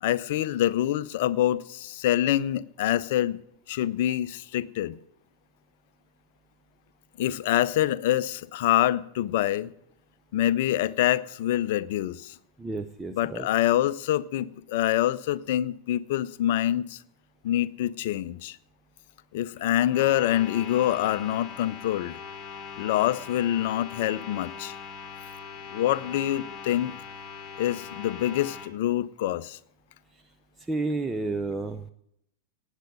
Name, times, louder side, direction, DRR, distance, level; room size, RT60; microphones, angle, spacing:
voice 1, 0.0-3.4 3.7-5.0 7.2-9.7 10.3-12.3 13.1-17.0 17.4-18.6 19.3-22.2 22.8-24.7 25.7-26.9 27.6-29.6, left 12 dB, 50° left, 0.6 m, -26 dB
voice 2, 12.6-13.5 30.1-30.2 30.6-31.9, right 3 dB, 10° right, 0.7 m, -31 dB
sound 1, 19.8-28.7, left 6 dB, 20° left, 2.1 m, -41 dB
18.0 x 8.3 x 6.3 m
figure-of-eight pair, 90°, 0 cm